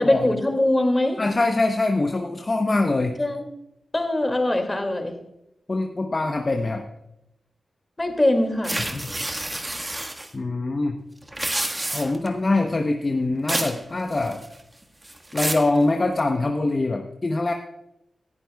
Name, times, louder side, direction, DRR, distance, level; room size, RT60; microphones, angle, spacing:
voice 1, 0.0-1.2 3.2-3.4 3.9-5.2 8.0-8.8, left 1 dB, 25° left, 5 dB, 2.4 m, -22 dB
voice 2, 1.2-3.2 5.7-6.9 8.8-9.0 10.3-11.0 11.9-14.4 15.3-17.5, left 2 dB, 45° left, 4 dB, 0.9 m, -23 dB
sound 1, 8.6-10.3 11.2-12.3 13.5-13.8 14.1-14.6 15.0-15.7, right 1 dB, 25° right, 1.6 m, -28 dB
18.0 x 11.0 x 2.3 m, 0.84 s
cardioid pair, 40°, 0 cm